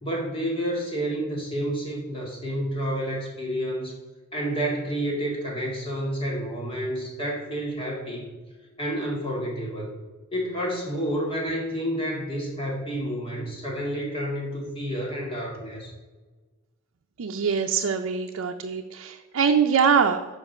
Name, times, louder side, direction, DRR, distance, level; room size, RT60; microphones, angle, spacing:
voice 1, 0.0-3.9 4.3-8.3 8.8-9.9 10.3-15.9, equal, 25° left, -2 dB, 2.0 m, -29 dB
voice 2, 17.2-20.3, right 6 dB, 90° right, 4 dB, 0.5 m, -23 dB
7.3 x 5.3 x 6.5 m, 1.3 s
head